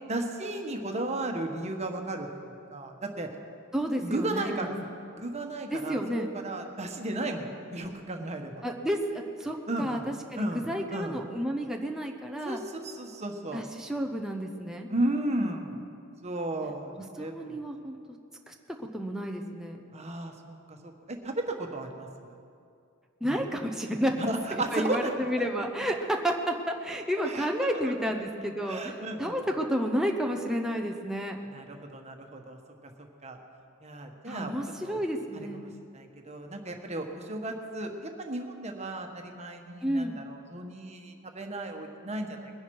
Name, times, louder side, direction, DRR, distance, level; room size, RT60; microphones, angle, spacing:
voice 1, 0.1-3.3 4.0-4.7 5.2-8.5 9.7-10.1 10.4-11.2 12.4-13.6 14.9-15.8 16.2-16.9 17.2-17.6 19.9-22.4 23.2-23.4 24.2-25.1 25.4-25.7 27.2-27.5 28.6-29.3 31.5-32.6 33.2-33.4 33.8-34.5 34.8-35.0 35.6-42.5, right 1 dB, 35° right, 3 dB, 1.3 m, -34 dB
voice 2, 3.7-4.8 5.7-6.3 8.6-12.6 13.5-14.9 17.0-18.0 18.5-18.6 18.9-19.8 23.2-24.2 24.5-31.4 34.3-35.6 39.8-40.2, equal, 5° right, 1 dB, 0.8 m, -31 dB
21.5 x 10.5 x 4.8 m, 2.4 s
head